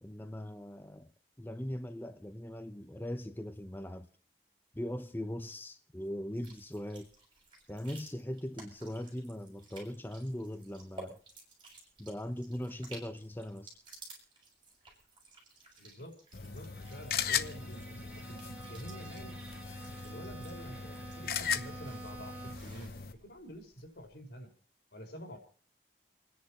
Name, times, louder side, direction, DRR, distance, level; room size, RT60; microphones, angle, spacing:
voice 1, 0.0-1.1 1.4-4.1 4.7-7.1 7.7-11.2 12.0-13.7, left 1 dB, 10° left, 0.7 m, -40 dB
sound 1, 6.3-24.2, right 2 dB, 30° right, 6.8 m, -55 dB
voice 2, 15.8-19.3 20.0-22.9 23.2-24.5 24.9-25.4, equal, 85° left, 4.5 m, -48 dB
sound 2, 16.3-23.1, left 7 dB, 55° left, 0.8 m, -38 dB
Bowed string instrument, 16.4-22.8, right 2 dB, 5° right, 2.3 m, -49 dB
29.5 x 10.5 x 4.3 m
head